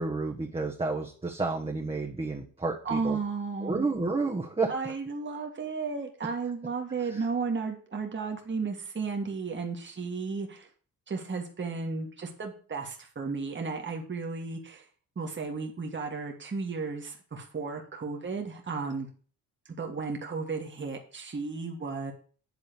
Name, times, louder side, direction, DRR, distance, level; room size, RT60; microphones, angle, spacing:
voice 1, 0.0-3.2 3.6-4.9 7.0-7.3, right 3 dB, 15° right, 0 dB, 1.3 m, -31 dB
voice 2, 2.9-3.9 4.7-10.7 11.1-14.9 15.2-19.1 19.8-22.1, right 4 dB, 30° right, 2 dB, 1.8 m, -34 dB
8.4 x 3.8 x 6.9 m, 0.41 s
supercardioid pair, 65°, 35 cm